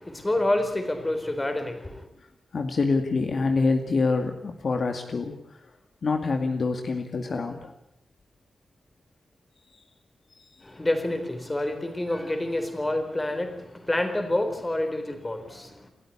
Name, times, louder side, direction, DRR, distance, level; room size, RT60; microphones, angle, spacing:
voice 1, 0.0-2.1 10.6-15.9, left 1 dB, 15° left, 7 dB, 3.9 m, -28 dB
voice 2, 2.5-5.3 6.0-7.7 15.5-15.6, left 4 dB, 55° left, 5 dB, 2.2 m, -26 dB
29.0 x 13.5 x 9.9 m, 0.79 s
wide cardioid pair, 140°, 0 cm